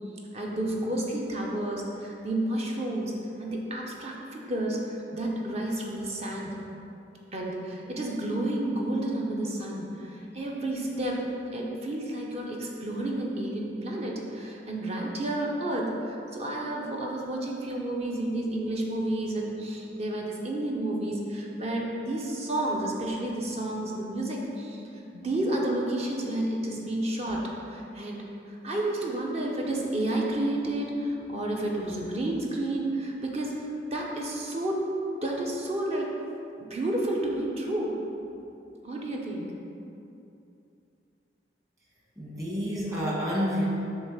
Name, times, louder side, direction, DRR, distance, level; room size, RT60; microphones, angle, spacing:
voice 1, 0.3-3.1 3.4-6.5 7.3-11.3 11.5-24.8 25.1-28.2 28.5-34.8 35.2-36.1 36.6-37.9 38.8-39.5, right 1 dB, 35° right, -1 dB, 0.9 m, -31 dB
voice 2, 42.2-43.6, equal, 20° right, -5 dB, 1.5 m, -29 dB
7.0 x 3.2 x 6.1 m, 2.7 s
head